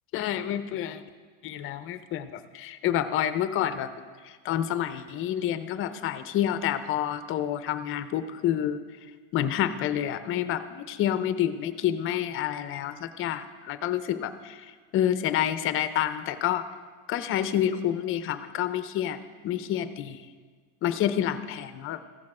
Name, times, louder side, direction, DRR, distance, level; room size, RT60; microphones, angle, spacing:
voice 1, 0.1-1.0 1.4-3.9 4.4-8.8 9.3-14.6 14.9-16.6 17.1-19.2 19.4-20.2 20.8-22.0, left 11 dB, 35° left, 12 dB, 0.5 m, -28 dB
15.0 x 6.5 x 4.8 m, 1.5 s
supercardioid pair, 140°, 38 cm